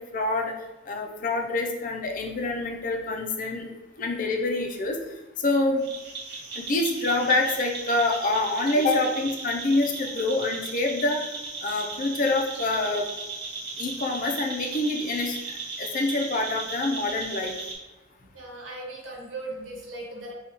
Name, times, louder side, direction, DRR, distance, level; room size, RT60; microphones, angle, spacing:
voice 1, 0.1-0.5 0.9-3.7 4.0-5.0 5.4-5.8 6.6-11.2 11.6-13.1 13.8-15.4 15.8-17.6, left 2 dB, 45° left, 2 dB, 0.5 m, -26 dB
sound 1, 5.8-17.7, right 3 dB, 55° right, 0.9 m, -36 dB
voice 2, 18.2-20.3, right 2 dB, 85° right, -2 dB, 1.0 m, -38 dB
2.9 x 2.3 x 4.1 m, 1.1 s
head